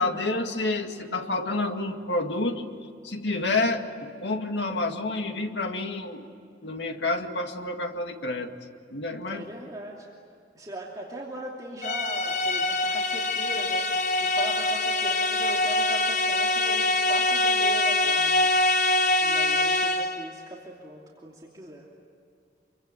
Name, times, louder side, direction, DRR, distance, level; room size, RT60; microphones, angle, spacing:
voice 1, 0.0-2.6 3.0-6.3 6.6-8.5 8.9-9.4, left 2 dB, 75° left, 5 dB, 2.1 m, -29 dB
voice 2, 9.3-10.1 10.5-13.9 14.2-18.5 19.2-21.9, right 1 dB, 20° right, -3 dB, 2.8 m, -40 dB
sound 1, 11.8-20.3, left 2 dB, 40° left, 1.2 m, -24 dB
27.0 x 23.5 x 9.0 m, 2.4 s
head